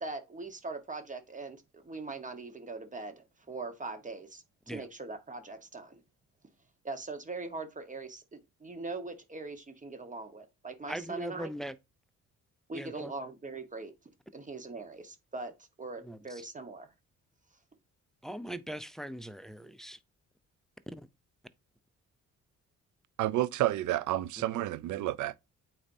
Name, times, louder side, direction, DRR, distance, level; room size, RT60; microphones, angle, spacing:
voice 1, 0.0-6.0 6.8-11.5 12.7-13.9 14.3-15.5 15.8-16.9, right 3 dB, 25° right, 1.2 m, -41 dB
voice 2, 10.9-11.7 12.7-13.1 16.0-16.4 18.2-20.0 21.0-21.1 24.4-24.5, right 1 dB, ahead, 0.5 m, -41 dB
voice 3, 23.2-25.4, right 14 dB, 75° right, 0.5 m, -30 dB
8.6 x 4.2 x 2.7 m
cardioid pair, 90°, 30 cm